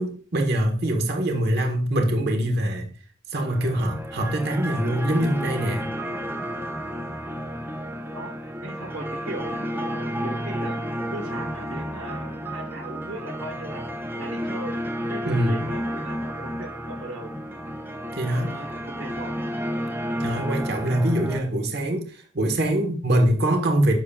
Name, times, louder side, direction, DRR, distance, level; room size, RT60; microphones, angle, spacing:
voice 1, 0.0-2.9 3.3-5.9 15.3-15.6 18.1-18.5 20.2-23.9, right 1 dB, 55° right, 3 dB, 1.5 m, -23 dB
sound 1, 3.4-21.4, equal, 10° right, 0.7 m, -31 dB
voice 2, 7.6-13.8 14.2-14.8 15.1-17.3 18.5-19.5, right 1 dB, 80° right, 3 dB, 1.4 m, -38 dB
10.5 x 7.2 x 2.4 m, 0.42 s
head